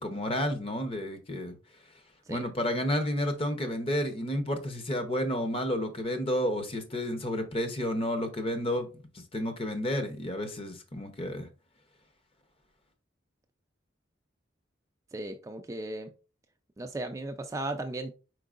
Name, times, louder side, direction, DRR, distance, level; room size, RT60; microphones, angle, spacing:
voice 1, 0.0-1.6 2.3-8.9 9.1-11.5, left 1 dB, 30° left, 0.7 m, -31 dB
voice 2, 15.1-16.1 16.8-18.1, right 2 dB, 15° right, 0.3 m, -36 dB
4.6 x 4.4 x 2.4 m
head